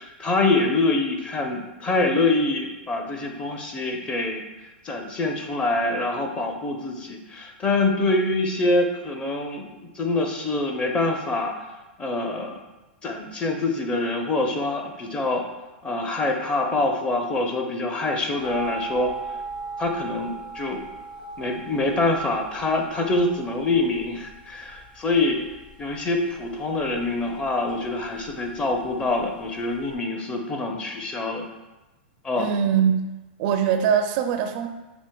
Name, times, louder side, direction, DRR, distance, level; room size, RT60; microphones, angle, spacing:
voice 1, 0.0-4.4 4.8-11.5 12.0-12.6 13.0-15.4 15.8-19.1 19.8-20.8 21.4-25.4 25.8-31.5 32.2-32.5, left 2 dB, 20° left, 2 dB, 0.6 m, -25 dB
sound 1, 18.4-29.9, right 3 dB, 65° left, 1.2 m, -39 dB
voice 2, 32.4-33.0 33.4-34.7, right 8 dB, 50° right, 6 dB, 0.4 m, -22 dB
6.2 x 2.9 x 2.2 m, 1.1 s
hypercardioid pair, 115°, 6 cm